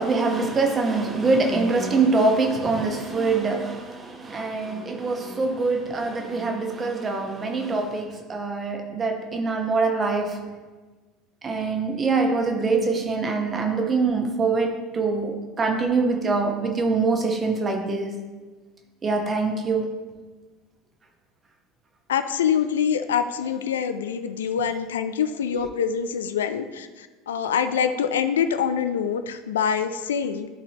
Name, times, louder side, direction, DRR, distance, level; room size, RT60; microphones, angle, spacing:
voice 1, 0.0-10.4 11.4-18.2 19.0-19.9 25.5-25.6, right 3 dB, 25° right, 3 dB, 1.1 m, -24 dB
voice 2, 22.1-26.9 27.3-30.5, left 7 dB, 75° left, 10 dB, 0.3 m, -25 dB
11.5 x 4.2 x 2.9 m, 1.3 s
figure-of-eight pair, 70°, 0 cm